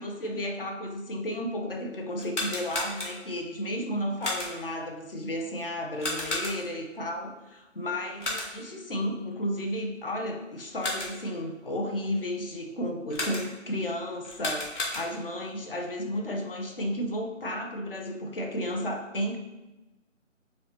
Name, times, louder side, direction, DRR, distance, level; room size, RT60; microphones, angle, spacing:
voice 1, 0.0-19.4, equal, 45° left, 2 dB, 0.5 m, -33 dB
Zapper Trigger, 2.1-3.4 4.2-4.8 6.0-6.9 8.2-8.8 10.6-11.3 13.1-13.7 14.2-15.4, left 1 dB, 65° left, 1.2 m, -34 dB
5.1 x 2.2 x 2.8 m, 1.0 s
figure-of-eight pair, 160°, 38 cm